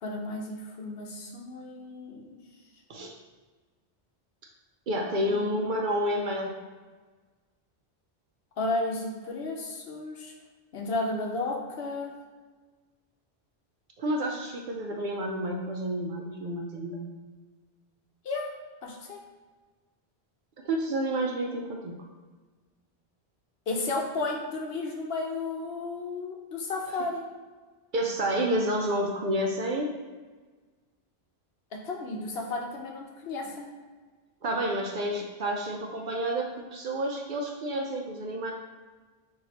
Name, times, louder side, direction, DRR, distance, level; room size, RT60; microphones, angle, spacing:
voice 1, 0.0-2.4 5.3-5.7 8.6-10.3 10.7-12.1 18.2-18.5 18.8-19.2 23.7-27.2 31.8-33.7, left 2 dB, 70° left, 1 dB, 0.9 m, -33 dB
voice 2, 4.9-6.5 14.0-17.1 20.6-21.9 27.9-29.9 34.4-38.5, right 1 dB, 60° right, 1 dB, 0.6 m, -29 dB
5.9 x 2.7 x 2.8 m, 1.4 s
omnidirectional pair, 1.1 m